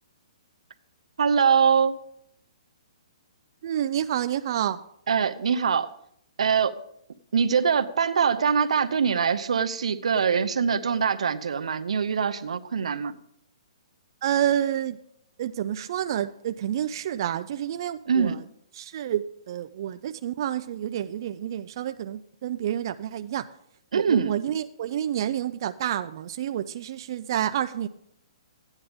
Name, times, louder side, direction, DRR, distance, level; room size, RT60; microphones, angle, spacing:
voice 1, 1.2-2.0 5.1-5.9 6.4-6.8 7.3-13.1 18.1-18.4 23.9-24.3, right 6 dB, 80° right, 11 dB, 0.8 m, -23 dB
voice 2, 3.6-4.8 14.2-15.0 15.4-18.4 18.8-23.5 23.9-27.9, right 10 dB, 40° right, 10 dB, 0.4 m, -29 dB
14.5 x 9.8 x 3.5 m, 0.70 s
hypercardioid pair, 165°, 3 cm